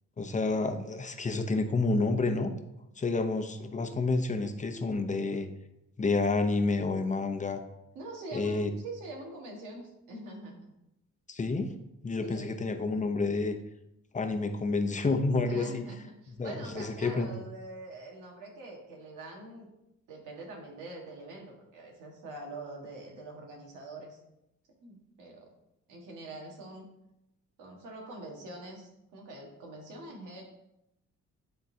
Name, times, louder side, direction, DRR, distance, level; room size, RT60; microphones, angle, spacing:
voice 1, 0.2-2.5 3.0-5.5 6.0-7.6 8.3-8.7 11.3-11.7 12.0-13.6 14.1-15.8 16.4-17.3, left 3 dB, 25° left, 6 dB, 0.7 m, -29 dB
voice 2, 7.9-10.7 12.2-12.8 15.5-19.7 20.1-24.2 24.8-25.5 25.9-26.9 27.6-30.4, right 2 dB, 90° right, 0 dB, 1.6 m, -44 dB
10.0 x 3.8 x 2.8 m, 0.87 s
cardioid pair, 90°, 30 cm